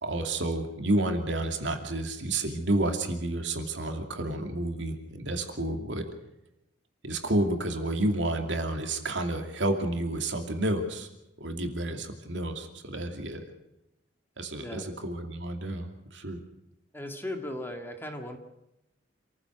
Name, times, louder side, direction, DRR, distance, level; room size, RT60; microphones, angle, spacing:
voice 1, 0.0-6.0 7.0-11.1 11.4-13.4 14.4-16.4, right 1 dB, 75° right, 4 dB, 2.7 m, -30 dB
voice 2, 14.6-14.9 16.9-18.4, left 1 dB, 10° left, 3 dB, 2.1 m, -37 dB
27.5 x 15.0 x 6.4 m, 0.89 s
head